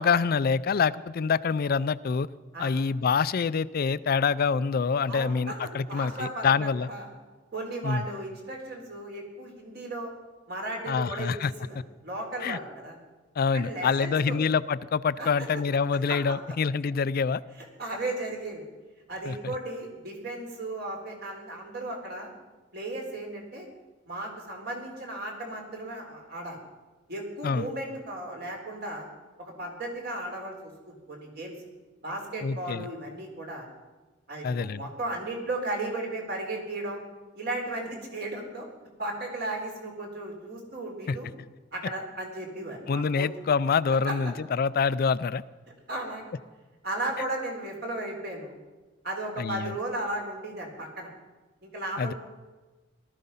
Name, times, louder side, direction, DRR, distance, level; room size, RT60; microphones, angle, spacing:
voice 1, 0.0-2.3 2.6-6.9 7.8-8.1 10.9-11.5 12.4-12.6 13.4-17.4 19.3-19.5 27.4-27.7 32.4-32.9 34.4-34.8 41.1-41.2 42.9-45.4 49.4-49.7 52.0-52.1, left 5 dB, 50° left, 16 dB, 0.4 m, -26 dB
voice 2, 5.1-5.6 5.9-7.1 7.5-10.1 10.5-13.0 13.5-14.4 15.2-15.3 16.1-16.2 17.6-18.7 19.1-22.3 22.7-23.7 24.1-26.6 27.1-29.1 29.4-31.5 32.0-33.7 34.3-37.0 37.3-38.7 39.0-41.3 41.7-43.3 44.1-44.2 45.9-46.3 46.8-48.5 49.0-51.1 51.6-52.1, right 2 dB, 55° right, 1 dB, 3.8 m, -35 dB
18.5 x 13.5 x 5.6 m, 1.2 s
head